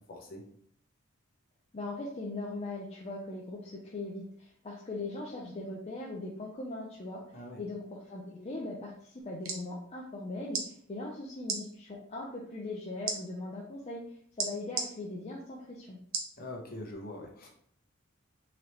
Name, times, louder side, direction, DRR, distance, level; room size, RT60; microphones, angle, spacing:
voice 1, 0.1-0.4 7.3-7.6 16.4-17.5, left 1 dB, 45° left, 0 dB, 1.0 m, -43 dB
voice 2, 1.7-7.2 7.6-14.0 14.4-16.0, left 2 dB, 30° left, -3 dB, 0.5 m, -40 dB
sound 1, 9.2-9.6 10.5-10.7 11.4-11.6 13.1-13.2 14.4-14.9 16.1-16.3 16.9-17.0, right 5 dB, 85° right, 0.8 m, -33 dB
3.9 x 3.0 x 3.2 m, 0.64 s
head